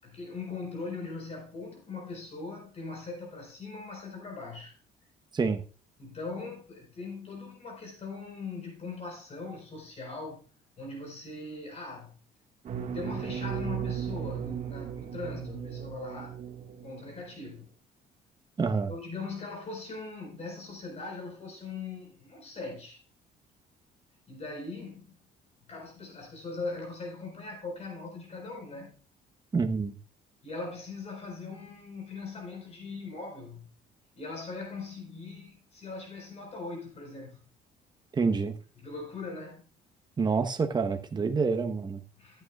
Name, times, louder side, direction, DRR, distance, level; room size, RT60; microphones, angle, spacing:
voice 1, 0.0-4.7 6.0-10.4 10.8-12.2 12.8-16.4 16.8-17.7 18.9-23.0 24.3-25.1 25.7-29.0 30.4-33.7 34.1-37.4 38.8-39.6 42.2-42.4, left 3 dB, 40° left, 4.5 m, -40 dB
sound 1, 12.6-17.2, right 9 dB, 45° right, 1.7 m, -36 dB
voice 2, 18.6-18.9 29.5-30.0 38.1-38.5 40.2-42.0, right 5 dB, 25° right, 1.0 m, -27 dB
14.0 x 9.0 x 2.4 m
cardioid pair, 110°, 17 cm